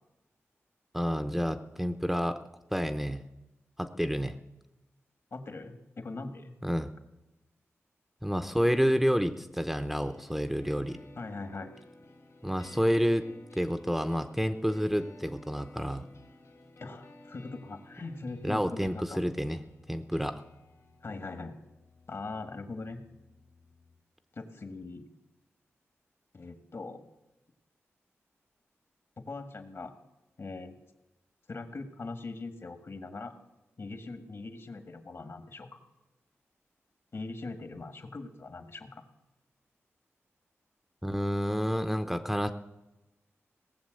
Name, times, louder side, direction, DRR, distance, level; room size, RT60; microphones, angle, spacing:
voice 1, 0.9-2.4 2.7-3.2 3.8-4.4 6.6-6.9 8.2-11.0 12.4-13.2 13.5-16.1 18.4-19.6 19.9-20.4 41.0-42.5, equal, 5° right, 9 dB, 0.8 m, -29 dB
voice 2, 5.3-6.5 11.2-11.8 16.8-19.2 21.0-21.5 22.1-23.0 24.3-25.0 26.3-27.0 29.2-29.9 30.4-30.8 31.5-33.3 33.8-35.8 37.1-39.0, left 3 dB, 55° left, 8 dB, 1.7 m, -41 dB
sound 1, 10.0-24.0, left 2 dB, 75° left, 3.0 m, -56 dB
18.0 x 7.2 x 7.7 m, 1.0 s
cardioid pair, 60°, 5 cm